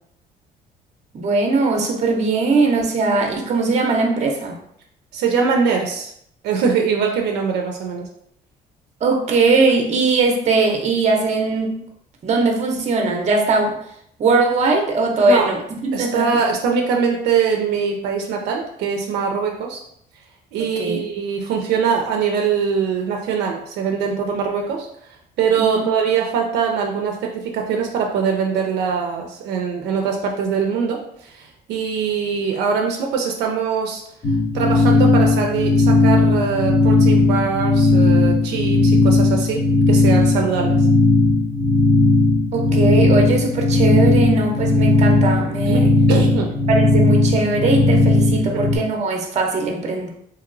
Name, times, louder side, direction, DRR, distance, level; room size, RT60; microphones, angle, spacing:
voice 1, 1.1-4.6 9.0-11.7 12.2-13.8 14.2-16.4 20.6-21.0 25.6-25.8 42.5-45.9 46.7-50.1, right 3 dB, 40° right, 1 dB, 0.7 m, -20 dB
voice 2, 5.1-6.1 6.4-8.1 15.3-15.5 15.9-19.8 20.5-24.9 25.4-34.0 34.5-40.9 45.7-46.5, right 6 dB, 80° right, 1 dB, 0.5 m, -22 dB
sound 1, 34.2-48.8, left 2 dB, 25° left, 0.9 m, -16 dB
2.8 x 2.8 x 2.6 m, 0.70 s
cardioid pair, 110°, 17 cm